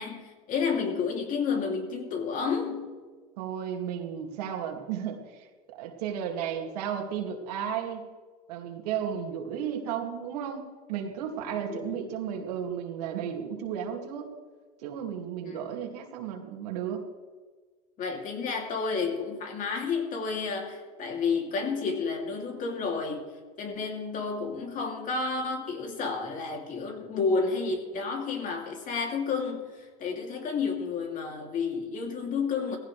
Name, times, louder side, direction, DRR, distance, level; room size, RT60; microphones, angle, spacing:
voice 1, 0.0-2.9 11.5-11.9 15.4-15.7 18.0-23.2 23.6-32.8, left 5 dB, 40° left, 2 dB, 2.9 m, -31 dB
voice 2, 3.4-8.1 8.5-14.3 14.8-17.0, right 8 dB, 80° right, 2 dB, 2.4 m, -34 dB
19.0 x 16.0 x 3.3 m, 1.4 s
supercardioid pair, 110°, 20 cm